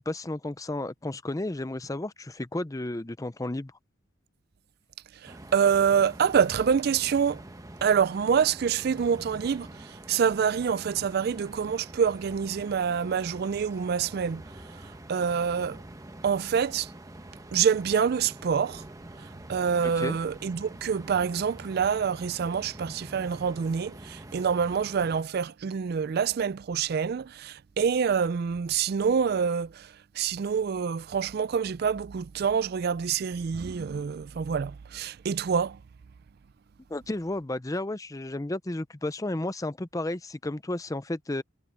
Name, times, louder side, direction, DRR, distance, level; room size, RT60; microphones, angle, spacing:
voice 1, 0.0-3.7 19.8-20.2 36.9-41.4, left 1 dB, 15° left, 0.6 m, -32 dB
voice 2, 5.2-7.4 7.8-14.4 15.1-15.8 16.2-16.9 17.5-18.8 19.5-29.9 30.2-35.8, right 7 dB, 50° right, 0.4 m, -26 dB
sound 1, 5.3-25.2, right 1 dB, 15° right, 1.2 m, -46 dB
head